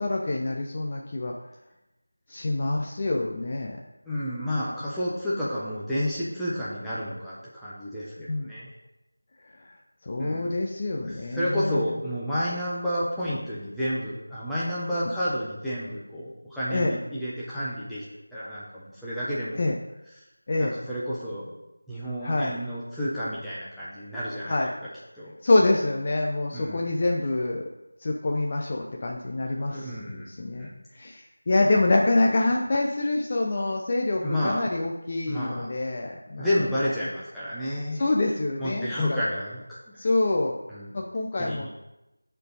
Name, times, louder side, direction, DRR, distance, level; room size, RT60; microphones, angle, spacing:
voice 1, 0.0-1.3 2.3-3.8 8.2-8.5 9.4-12.0 16.7-17.0 19.6-19.8 20.5-20.7 22.2-22.6 24.4-24.7 25.4-27.6 28.0-36.5 37.9-39.2 40.0-40.6 40.9-41.7, left 2 dB, 25° left, 0 dB, 0.6 m, -26 dB
voice 2, 4.0-8.7 10.2-10.5 10.8-18.1 18.3-19.6 20.6-21.5 21.9-24.7 25.2-25.3 26.5-26.8 29.6-30.3 30.6-30.7 34.2-34.6 35.3-35.7 36.4-38.0 38.6-39.6 40.7-40.9 41.4-41.7, equal, ahead, -12 dB, 1.0 m, -30 dB
13.0 x 4.5 x 4.0 m, 0.95 s
figure-of-eight pair, 170°, 0 cm